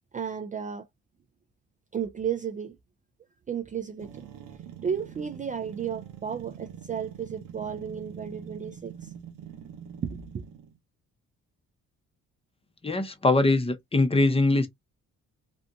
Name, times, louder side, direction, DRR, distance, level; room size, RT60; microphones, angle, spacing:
voice 1, 0.1-0.9 1.9-2.8 3.5-4.3 4.8-9.1 10.0-10.4, right 7 dB, 25° right, 0.3 m, -33 dB
sound 1, 4.0-10.8, right 8 dB, 85° right, 0.8 m, -44 dB
voice 2, 12.8-14.7, left 2 dB, 20° left, 0.7 m, -22 dB
2.7 x 2.5 x 2.3 m
cardioid pair, 90°, 30 cm